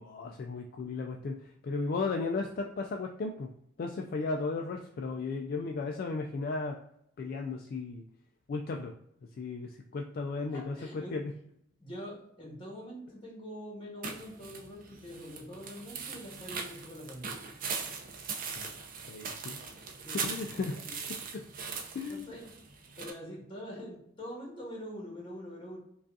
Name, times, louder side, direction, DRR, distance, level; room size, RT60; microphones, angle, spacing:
voice 1, 0.0-3.5 3.8-6.8 7.2-8.1 8.5-8.9 9.4-11.2 18.6-18.7 19.1-19.7 20.2-20.7 21.3-21.4 21.9-22.2, left 3 dB, 50° left, 2 dB, 0.3 m, -35 dB
voice 2, 10.5-11.2 11.8-17.3 20.0-21.2 22.1-22.4 23.0-25.8, equal, 25° left, -3 dB, 1.3 m, -44 dB
sound 1, 14.0-23.1, right 5 dB, 45° right, 0.5 m, -40 dB
4.9 x 2.4 x 2.6 m, 0.73 s
head